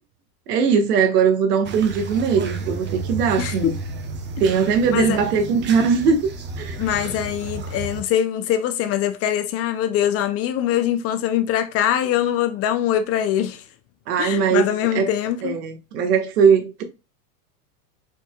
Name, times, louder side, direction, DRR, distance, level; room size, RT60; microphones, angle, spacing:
voice 1, 0.5-3.7 4.4-6.3 6.6-6.8 14.1-14.7 14.9-15.1 15.4-16.8, right 6 dB, 75° right, 1.5 m, -20 dB
sound 1, 1.6-8.0, right 3 dB, 25° right, 0.8 m, -32 dB
voice 2, 3.4-3.8 4.9-5.2 6.8-13.6 14.2-15.6, left 10 dB, 30° left, 0.5 m, -23 dB
4.4 x 4.4 x 2.3 m
hypercardioid pair, 110°, 48 cm